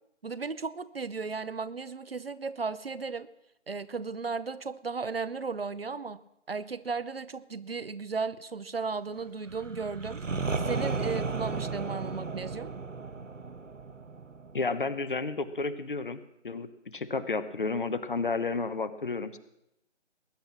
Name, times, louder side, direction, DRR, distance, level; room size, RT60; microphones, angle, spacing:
voice 1, 0.2-3.3 3.7-10.2 10.6-12.8, right 4 dB, 55° right, 16 dB, 0.8 m, -35 dB
sound 1, 9.5-15.2, right 4 dB, 85° right, 1.2 m, -34 dB
voice 2, 14.5-16.2 16.4-16.7 16.9-19.4, left 3 dB, 45° left, 12 dB, 1.1 m, -31 dB
20.0 x 10.5 x 6.1 m, 0.83 s
figure-of-eight pair, 155°, 36 cm